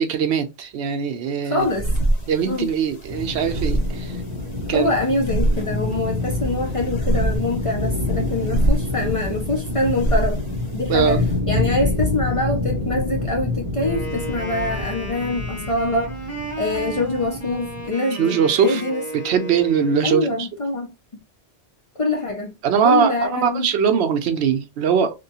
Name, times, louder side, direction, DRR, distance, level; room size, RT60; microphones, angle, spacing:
voice 1, 0.0-1.7 2.3-4.2 4.7-4.9 10.9-11.3 18.2-18.8 19.1-20.5 22.6-25.1, right 7 dB, 75° right, 0.8 m, -21 dB
voice 2, 1.4-1.9 2.4-2.7 4.7-10.4 10.7-11.2 11.5-16.2 16.6-19.0 20.0-20.9 22.0-22.5 22.8-23.7, left 2 dB, 40° left, 0.5 m, -24 dB
sound 1, 1.6-11.4, right 1 dB, 75° left, 1.6 m, -26 dB
sound 2, 3.1-17.9, left 2 dB, 35° right, 0.7 m, -27 dB
Wind instrument woodwind instrument, 13.8-20.1, right 2 dB, 15° left, 1.4 m, -34 dB
2.9 x 2.3 x 2.6 m
omnidirectional pair, 1.1 m